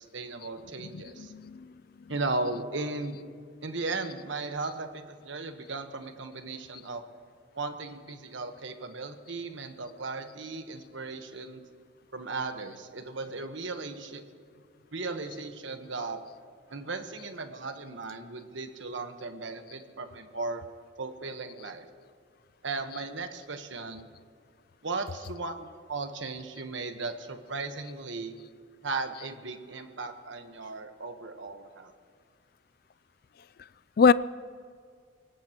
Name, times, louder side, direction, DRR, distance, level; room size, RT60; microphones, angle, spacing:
voice 1, 0.0-1.3 2.1-3.2 3.6-7.0 7.5-11.6 12.1-14.2 14.9-16.2 16.7-20.6 21.0-21.9 22.6-24.1 24.8-28.4 28.8-31.9, right 3 dB, 75° right, 7 dB, 1.2 m, -36 dB
voice 2, 1.2-1.7 34.0-34.1, left 5 dB, 50° left, 17 dB, 0.4 m, -21 dB
24.0 x 18.5 x 3.0 m, 2.2 s
head